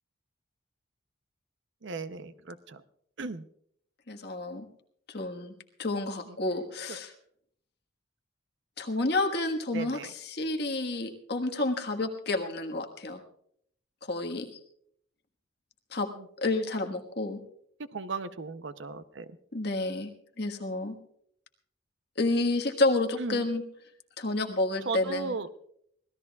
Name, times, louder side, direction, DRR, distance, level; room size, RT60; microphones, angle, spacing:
voice 1, 1.8-2.8 3.2-3.5 6.3-6.4 6.9-7.0 9.7-10.1 16.1-16.2 17.9-19.3 23.2-23.4 24.9-25.5, right 3 dB, 65° right, 12 dB, 0.7 m, -36 dB
voice 2, 4.1-4.6 5.1-5.5 5.8-7.1 8.8-13.2 14.1-14.6 15.9-16.1 16.4-17.4 19.5-20.1 20.4-20.9 22.2-23.6 24.2-25.4, left 2 dB, 55° left, 3 dB, 1.5 m, -30 dB
25.0 x 17.5 x 2.3 m, 0.68 s
head